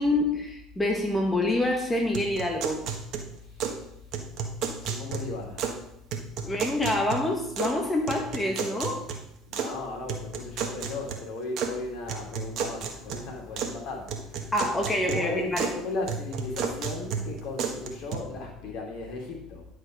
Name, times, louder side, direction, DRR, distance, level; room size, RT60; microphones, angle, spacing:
voice 1, 0.0-2.8 6.4-9.0 14.5-15.7, left 1 dB, 15° left, 1 dB, 1.6 m, -26 dB
sound 1, 2.1-3.8 4.1-5.8 6.1-7.8 8.1-9.7 10.1-11.7 12.1-13.8 14.1-15.8 16.1-18.2, right 6 dB, 55° right, 1.4 m, -33 dB
voice 2, 4.8-5.7 9.5-14.5 15.0-19.7, left 3 dB, 60° left, 0 dB, 2.7 m, -36 dB
10.5 x 5.2 x 5.1 m, 0.78 s
hypercardioid pair, 65°, 0 cm